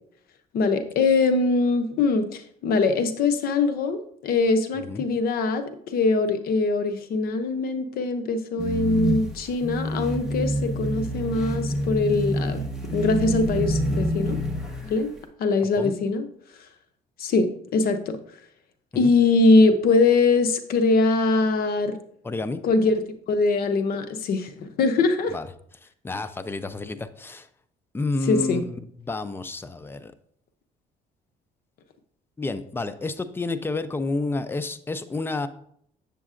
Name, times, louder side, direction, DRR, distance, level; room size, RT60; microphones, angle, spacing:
voice 1, 0.5-12.6 12.9-14.4 14.8-15.1 15.4-16.3 17.2-18.2 19.0-22.0 22.6-25.3 28.3-28.6, left 3 dB, 60° left, 9 dB, 0.7 m, -22 dB
sound 1, 8.6-15.0, right 1 dB, 5° right, 1.2 m, -27 dB
voice 2, 22.2-22.6 25.3-25.5 25.8-27.5 27.9-30.1 32.4-35.5, left 2 dB, 15° left, 12 dB, 0.4 m, -30 dB
7.2 x 6.9 x 2.5 m, 0.66 s
cardioid pair, 110°, 17 cm